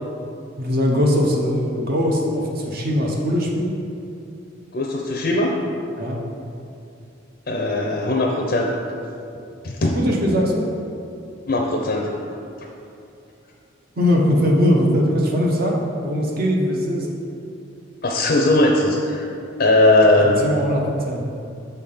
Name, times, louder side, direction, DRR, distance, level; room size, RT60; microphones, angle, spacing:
voice 1, 0.6-3.8 6.0-6.2 9.9-10.7 14.0-17.1 20.2-21.2, equal, 50° right, -1 dB, 0.9 m, -20 dB
voice 2, 4.7-5.5 7.5-8.7 9.6-10.0 11.5-12.1 18.0-19.3 19.6-20.5, left 2 dB, 45° left, 0 dB, 0.5 m, -18 dB
6.6 x 3.5 x 5.5 m, 2.6 s
head